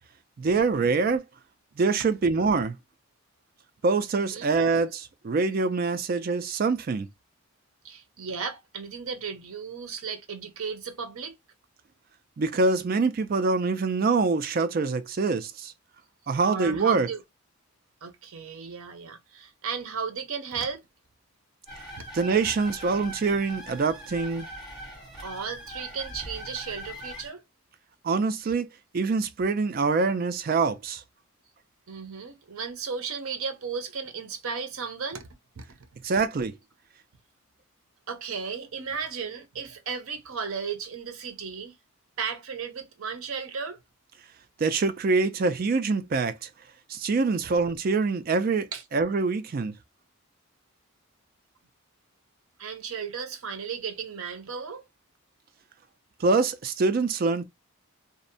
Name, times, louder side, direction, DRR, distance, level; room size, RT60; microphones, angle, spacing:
voice 1, 0.4-1.2 1.8-2.8 3.8-7.1 12.4-15.7 16.3-17.1 22.1-24.5 28.0-28.7 28.9-31.0 36.0-36.5 44.6-46.5 46.9-49.7 56.2-57.4, right 4 dB, 40° right, 0.3 m, -25 dB
voice 2, 4.1-4.5 7.8-11.3 16.3-17.2 18.0-20.8 22.0-22.1 25.2-27.4 31.9-35.3 35.6-35.8 38.1-41.8 42.2-43.8 48.7-48.8 52.6-54.8, right 6 dB, 75° right, 0.6 m, -35 dB
sound 1, 21.7-27.3, equal, ahead, 1.1 m, -41 dB
2.6 x 2.1 x 2.5 m
head